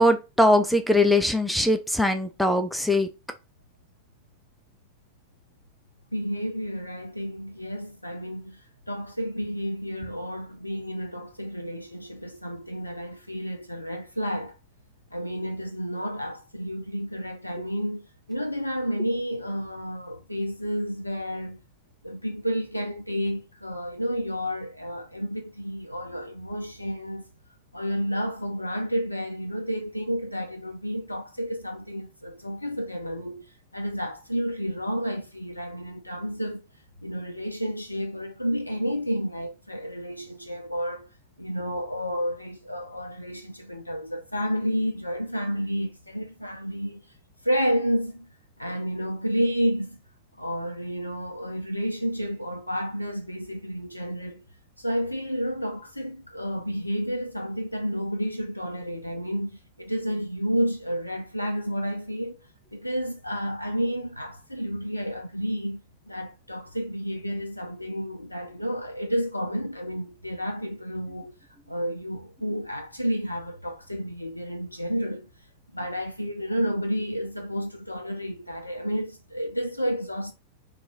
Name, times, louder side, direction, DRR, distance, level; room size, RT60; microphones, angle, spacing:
voice 1, 0.0-3.1, left 1 dB, ahead, 0.3 m, -21 dB
voice 2, 6.1-8.6 8.9-14.6 15.1-21.6 22.0-27.3 27.7-33.4 33.7-36.6 37.0-41.1 41.4-47.1 47.4-48.3 48.6-50.0 50.4-54.4 54.8-62.4 62.7-71.3 71.7-75.3 75.7-80.3, equal, 85° left, 0.3 m, -30 dB
2.7 x 2.2 x 2.8 m
figure-of-eight pair, 90°, 0 cm